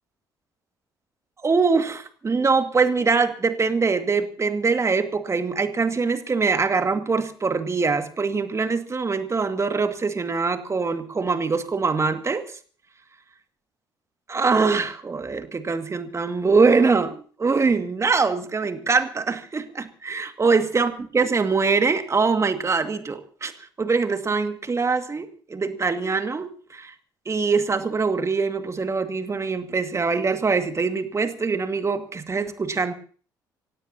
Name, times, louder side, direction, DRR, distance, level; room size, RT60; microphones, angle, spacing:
voice 1, 1.4-12.4 14.3-23.5 23.8-26.9 27.3-32.9, right 4 dB, 25° right, 8 dB, 2.1 m, -23 dB
27.0 x 16.5 x 2.9 m, 0.43 s
figure-of-eight pair, 50°, 11 cm